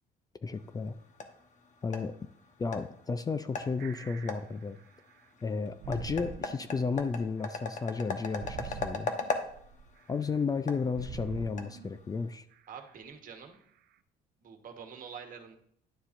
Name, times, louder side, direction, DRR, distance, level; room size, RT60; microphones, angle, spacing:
voice 1, 0.4-1.0 1.8-2.1 2.6-4.8 5.4-9.1 10.1-12.4, left 4 dB, 20° left, 11 dB, 0.4 m, -33 dB
sound 1, 0.5-12.4, left 4 dB, 45° left, 1.0 m, -40 dB
sound 2, 3.2-3.5 3.8-5.3 5.8-7.9 8.3-10.4 10.9-12.0 12.5-12.9 13.5-13.6, right 7 dB, 70° right, 0.6 m, -45 dB
voice 2, 12.7-13.6 14.4-15.6, right 7 dB, 55° right, 5 dB, 1.3 m, -46 dB
11.0 x 7.0 x 2.6 m, 0.65 s
cardioid pair, 110°, 17 cm